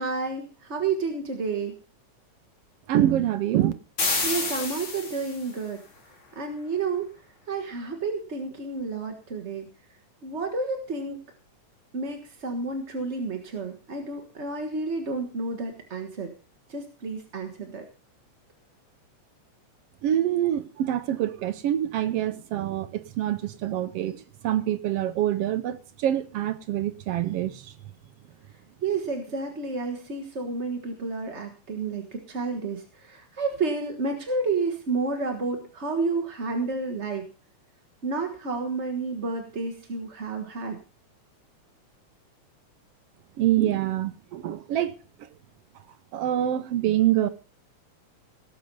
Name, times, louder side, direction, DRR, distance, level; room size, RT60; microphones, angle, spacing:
voice 1, 0.0-1.7 4.2-5.8 6.3-7.1 7.5-9.6 10.2-11.2 11.9-16.3 16.7-17.8 28.8-37.2 38.0-40.8, right 4 dB, 35° right, 1.2 m, -30 dB
voice 2, 2.9-3.7 20.0-24.2 24.4-27.5 43.4-44.9 46.1-47.3, right 12 dB, 70° right, 1.5 m, -25 dB
sound 1, 4.0-5.5, left 3 dB, 45° left, 3.5 m, -28 dB
18.0 x 7.9 x 5.5 m
omnidirectional pair, 3.4 m